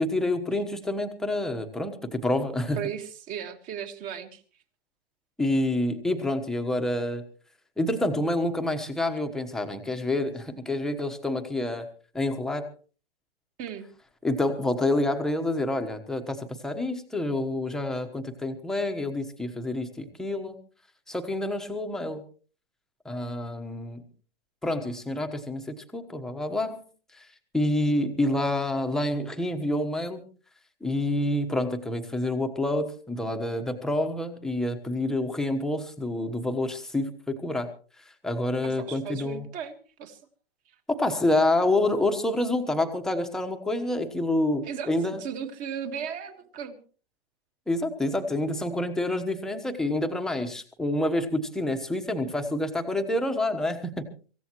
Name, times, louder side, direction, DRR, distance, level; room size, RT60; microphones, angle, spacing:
voice 1, 0.0-2.8 5.4-7.2 7.8-11.9 12.1-12.7 14.2-20.6 21.1-22.2 23.0-24.0 24.6-26.8 27.1-27.3 27.5-30.2 30.8-37.7 38.2-39.5 40.9-45.2 47.7-54.1, left 1 dB, ahead, 5 dB, 1.2 m, -28 dB
voice 2, 2.8-4.4 13.6-13.9 38.6-40.2 44.6-44.9 45.2-46.8, right 8 dB, 25° right, 8 dB, 1.7 m, -36 dB
25.0 x 15.0 x 3.1 m, 0.39 s
hypercardioid pair, 155°, 32 cm